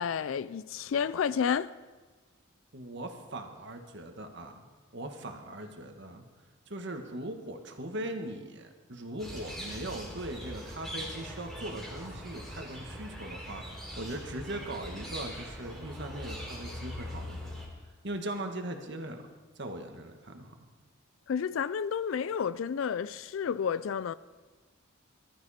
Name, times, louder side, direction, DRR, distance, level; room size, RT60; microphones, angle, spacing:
voice 1, 0.0-1.7 21.3-24.1, left 7 dB, 70° left, 0.3 m, -30 dB
voice 2, 2.7-4.6 4.9-6.2 6.7-13.6 14.0-17.5 17.8-19.2 19.5-20.6, right 1 dB, 55° right, 1.6 m, -40 dB
sound 1, 9.2-17.7, equal, ahead, 3.2 m, -41 dB
20.0 x 13.0 x 4.3 m
head